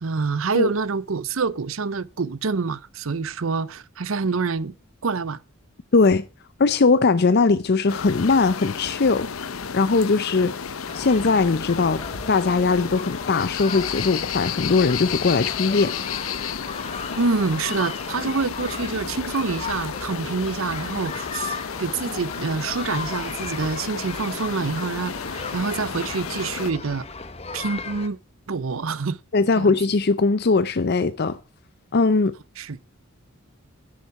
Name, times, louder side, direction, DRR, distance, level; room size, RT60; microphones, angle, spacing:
voice 1, 0.0-4.7 5.0-5.4 17.2-27.1 27.5-28.2 28.5-29.2 29.6-29.8 32.6-32.8, right 4 dB, 75° right, 0.7 m, -26 dB
voice 2, 5.9-6.2 6.6-10.5 10.9-12.0 12.3-15.9 29.3-31.4 31.9-32.3, left 4 dB, 50° left, 0.6 m, -20 dB
sound 1, 7.9-26.7, left 7 dB, 85° left, 0.8 m, -32 dB
sound 2, 10.9-28.1, left 4 dB, 30° left, 1.2 m, -36 dB
10.5 x 9.5 x 4.7 m
head